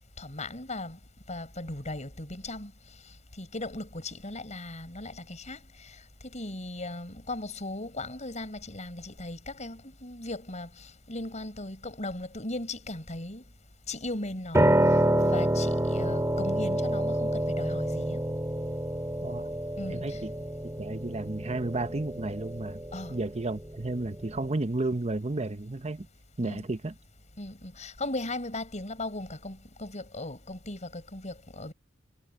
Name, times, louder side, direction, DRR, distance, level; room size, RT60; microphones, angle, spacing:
voice 1, 0.2-1.0 1.3-2.7 3.4-13.4 13.9-14.7 15.2-18.2 19.8-20.2 22.9-23.2 26.4-26.7 27.4-31.7, left 2 dB, 35° left, 6.6 m, -38 dB
Piano, 14.5-24.5, right 1 dB, 15° right, 2.0 m, -28 dB
voice 2, 19.2-19.6 19.9-20.3 20.8-22.8 23.1-26.1 26.4-26.9, right 2 dB, 35° right, 0.9 m, -32 dB
head